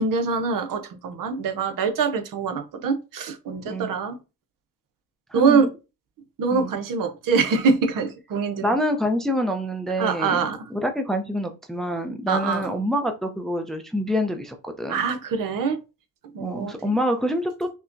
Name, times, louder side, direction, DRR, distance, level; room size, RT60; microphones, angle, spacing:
voice 1, 0.0-4.2 5.3-5.7 6.4-8.8 10.0-10.6 12.3-12.6 14.9-15.8 16.3-16.9, right 5 dB, 55° right, 7 dB, 0.8 m, -24 dB
voice 2, 5.3-5.7 6.5-6.7 8.6-15.1 16.4-17.8, equal, ahead, 6 dB, 0.6 m, -26 dB
5.3 x 2.2 x 2.6 m, 0.29 s
supercardioid pair, 75°, 38 cm